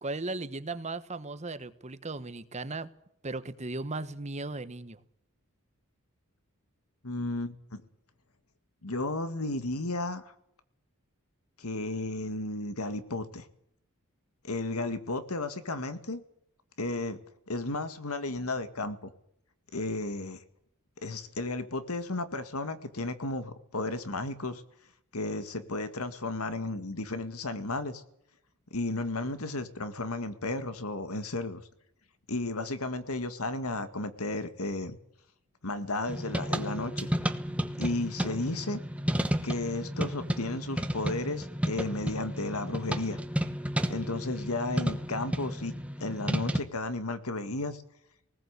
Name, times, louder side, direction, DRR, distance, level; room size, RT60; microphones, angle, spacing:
voice 1, 0.0-2.9 3.2-5.0, right 2 dB, 30° right, 13 dB, 1.1 m, -36 dB
voice 2, 7.0-7.8 8.8-10.3 11.6-13.5 14.4-16.2 16.8-17.2 17.5-19.1 19.7-20.4 21.0-24.6 25.1-28.0 28.7-31.6 32.3-35.0 35.6-37.1 37.8-38.8 39.4-43.2 43.9-45.7 46.0-47.8, left 2 dB, 80° left, 10 dB, 2.0 m, -33 dB
sound 1, 36.1-46.6, equal, 5° right, 1.1 m, -32 dB
19.5 x 18.0 x 8.3 m, 0.75 s
head